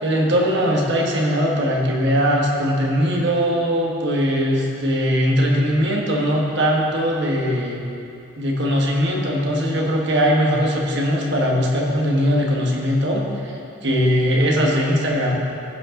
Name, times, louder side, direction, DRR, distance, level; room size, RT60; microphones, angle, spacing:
voice 1, 0.0-7.8 8.4-13.5 13.8-15.4, equal, 55° right, -1 dB, 1.3 m, -20 dB
15.5 x 5.5 x 3.8 m, 2.7 s
head